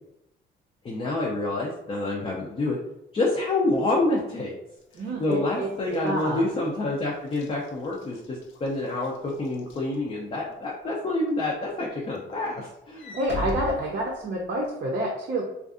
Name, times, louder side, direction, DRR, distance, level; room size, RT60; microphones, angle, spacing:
voice 1, 0.8-2.8 3.1-4.5 5.0-13.1, left 2 dB, 30° left, -3 dB, 0.5 m, -27 dB
Walk footsteps / Slam, 4.8-10.5 11.0-11.3 11.7-14.7, left 2 dB, 75° left, 0.5 m, -41 dB
voice 2, 4.9-6.4 13.1-15.4, right 1 dB, 45° right, -3 dB, 0.5 m, -28 dB
2.5 x 2.3 x 2.4 m, 0.83 s
cardioid pair, 90°, 20 cm